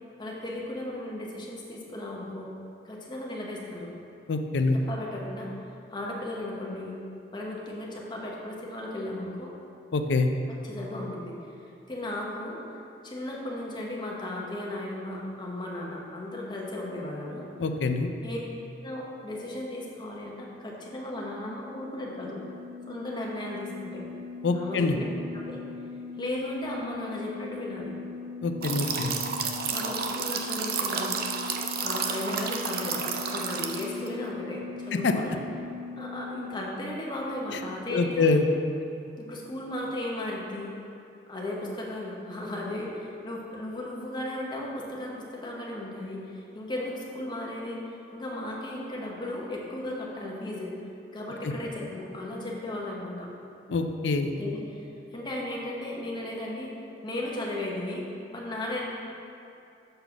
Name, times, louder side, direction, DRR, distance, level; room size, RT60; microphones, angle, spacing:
voice 1, 0.2-2.5 2.8-3.9 4.9-5.5 5.9-7.0 7.3-9.5 10.5-11.3 11.9-12.6 13.0-17.5 18.2-18.4 18.8-22.4 22.9-24.0 24.5-25.0 25.3-25.6 26.2-27.9 28.8-29.1 29.7-31.2 31.8-35.4 36.0-38.3 39.2-40.7 41.3-47.8 48.1-50.7 51.1-53.3 54.4-54.9 55.1-56.7 57.0-58.0 58.3-58.9, left 1 dB, 25° left, -3 dB, 1.1 m, -35 dB
voice 2, 4.3-4.8 9.9-10.3 17.6-18.1 24.4-25.0 28.4-29.1 35.0-35.1 37.5-37.6 37.9-38.5 51.4-51.5 53.7-54.3, left 3 dB, 85° left, 6 dB, 0.5 m, -25 dB
sound 1, 20.4-36.5, left 4 dB, ahead, 0.8 m, -41 dB
sound 2, 28.6-34.1, right 6 dB, 55° right, 0.5 m, -31 dB
6.7 x 4.0 x 5.8 m, 2.7 s
head